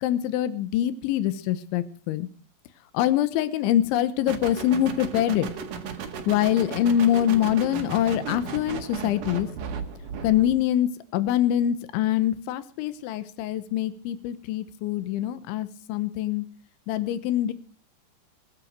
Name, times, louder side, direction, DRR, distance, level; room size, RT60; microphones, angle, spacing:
voice 1, 0.0-2.3 2.9-5.5 6.3-9.5 10.2-16.5 16.9-17.5, left 11 dB, 90° left, 13 dB, 3.4 m, -24 dB
sound 1, 4.3-10.6, right 6 dB, 55° right, 2.8 m, -35 dB
22.5 x 9.0 x 6.4 m, 0.42 s
omnidirectional pair, 5.3 m